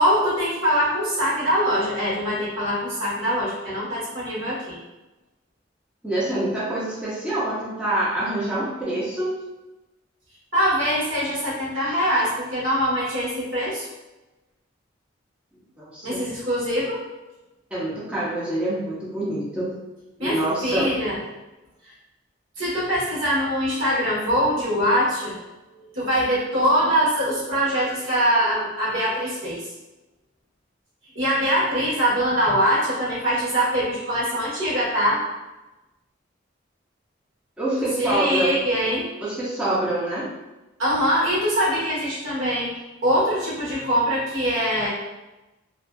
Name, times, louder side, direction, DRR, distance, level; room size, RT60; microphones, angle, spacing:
voice 1, 0.0-4.8 10.5-13.9 16.0-17.0 20.2-21.2 21.8-21.9 22.6-25.4 25.7-29.6 31.1-35.2 37.8-39.1 40.8-42.7 43.0-44.9, equal, 75° right, -7 dB, 1.1 m, -23 dB
voice 2, 6.0-9.3 15.8-16.2 17.7-19.7 20.2-20.9 37.6-38.6 39.2-40.3, right 1 dB, 5° right, -9 dB, 0.5 m, -26 dB
2.5 x 2.3 x 2.2 m, 1.0 s
head